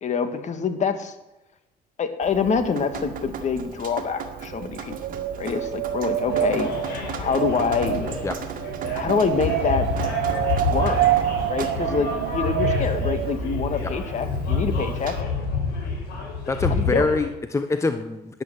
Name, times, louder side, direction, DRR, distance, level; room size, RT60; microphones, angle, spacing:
voice 1, 0.0-1.1 2.0-5.0 5.4-6.7 7.2-8.1 9.0-9.9 10.7-11.0 11.5-15.2 16.7-17.1, left 5 dB, 45° left, 8 dB, 1.8 m, -25 dB
Drip, 2.2-15.2, right 7 dB, 55° right, 2.0 m, -37 dB
Wind, 4.2-13.5, right 12 dB, 80° right, 0.9 m, -27 dB
sound 1, 6.3-17.3, left 4 dB, 70° left, 6.3 m, -29 dB
voice 2, 16.5-18.4, left 3 dB, 15° left, 9 dB, 0.9 m, -25 dB
12.5 x 10.5 x 7.7 m, 0.97 s
cardioid pair, 110°, 17 cm